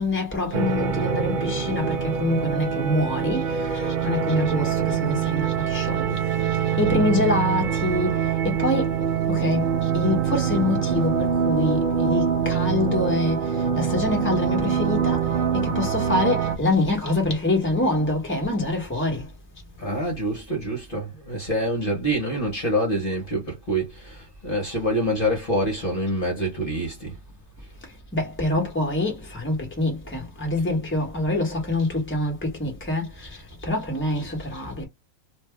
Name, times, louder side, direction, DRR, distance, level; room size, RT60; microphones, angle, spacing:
voice 1, 0.0-19.3 28.1-34.8, left 2 dB, 10° left, 1.2 m, -26 dB
sound 1, 0.5-16.6, right 7 dB, 50° right, 0.6 m, -24 dB
voice 2, 19.8-27.1, equal, 40° left, 1.3 m, -26 dB
2.7 x 2.6 x 3.4 m
omnidirectional pair, 1.5 m